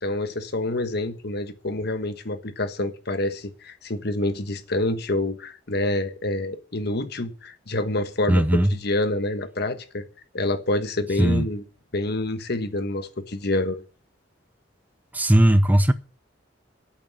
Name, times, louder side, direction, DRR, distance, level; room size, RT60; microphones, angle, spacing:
voice 1, 0.0-10.0 10.3-11.6 11.9-13.8, left 2 dB, 60° left, 1.3 m, -27 dB
voice 2, 8.3-8.7 11.2-11.5 15.1-15.9, right 1 dB, 10° right, 0.5 m, -18 dB
8.7 x 8.3 x 8.8 m
head